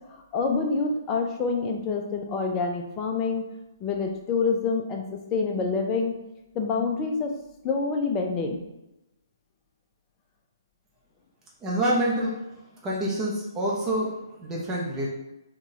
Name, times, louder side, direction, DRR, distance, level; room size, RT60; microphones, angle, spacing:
voice 1, 0.1-3.5 3.8-5.0 5.3-6.1 6.5-7.3 7.6-8.6, left 4 dB, 20° left, 2 dB, 0.5 m, -27 dB
voice 2, 11.6-12.5 12.8-15.1, right 1 dB, 15° right, -4 dB, 0.7 m, -27 dB
3.8 x 2.3 x 2.7 m, 0.94 s
figure-of-eight pair, 135°, 2 cm